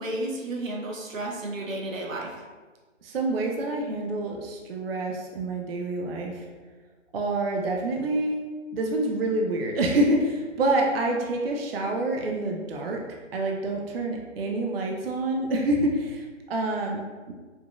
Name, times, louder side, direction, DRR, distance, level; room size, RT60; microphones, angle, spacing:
voice 1, 0.0-2.3, right 1 dB, 90° right, 0 dB, 1.0 m, -32 dB
voice 2, 3.0-6.5 7.1-8.4 8.7-13.0 13.3-17.3, right 2 dB, 50° right, 0 dB, 0.5 m, -27 dB
5.0 x 2.6 x 2.3 m, 1.3 s
figure-of-eight pair, 150°, 38 cm